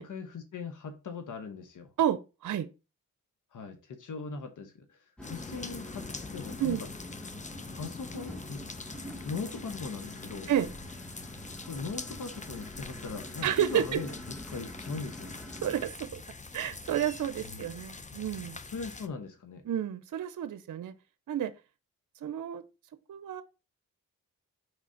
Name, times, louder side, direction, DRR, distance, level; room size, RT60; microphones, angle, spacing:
voice 1, 0.1-1.9 3.5-6.9 7.7-8.6 9.2-10.5 11.6-15.4 17.4-17.7 18.6-19.6, left 4 dB, 65° left, 1.0 m, -40 dB
voice 2, 2.0-2.7 6.6-6.8 10.5-10.7 13.4-14.0 15.6-16.2 16.5-18.6 19.7-20.9 21.3-21.5 22.2-22.6 23.1-23.4, right 10 dB, 60° right, 0.7 m, -30 dB
sound 1, 5.2-19.1, left 3 dB, 20° left, 0.7 m, -44 dB
sound 2, 5.2-15.9, left 1 dB, 5° left, 1.0 m, -46 dB
4.9 x 3.7 x 5.6 m
supercardioid pair, 50°, 34 cm